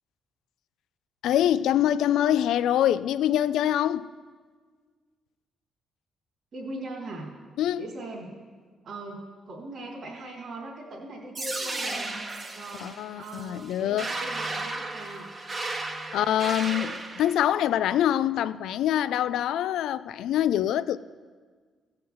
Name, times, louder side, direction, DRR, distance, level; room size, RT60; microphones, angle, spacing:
voice 1, 1.2-4.1 7.6-7.9 12.8-14.1 16.1-21.0, left 11 dB, 80° left, 0.4 m, -25 dB
voice 2, 6.5-7.3 7.8-8.3 8.8-12.2 12.5-15.3, right 2 dB, 55° right, 2.9 m, -40 dB
sound 1, 11.3-17.3, right 2 dB, 30° right, 1.2 m, -34 dB
16.0 x 5.7 x 7.8 m
cardioid pair, 90°, 0 cm